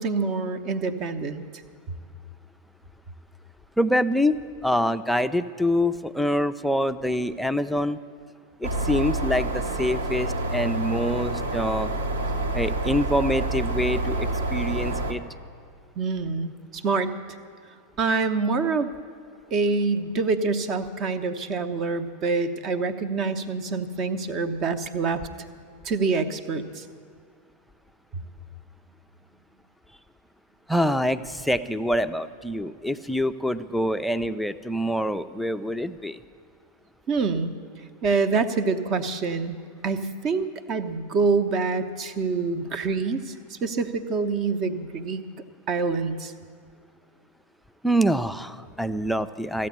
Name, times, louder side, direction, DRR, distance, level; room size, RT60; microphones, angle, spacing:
voice 1, 0.0-1.6 16.0-17.1 18.0-18.9 19.5-25.3 25.8-26.9 28.1-28.2 37.1-37.5 38.0-39.6 39.8-45.2 45.7-46.3, right 4 dB, 35° right, 12 dB, 0.8 m, -26 dB
voice 2, 3.8-8.0 8.6-11.9 12.5-15.2 30.7-36.2 47.8-49.7, equal, ahead, 9 dB, 0.5 m, -25 dB
sound 1, 8.6-15.1, right 2 dB, 65° right, 1.2 m, -28 dB
14.5 x 8.5 x 9.6 m, 2.2 s
figure-of-eight pair, 90°, 0 cm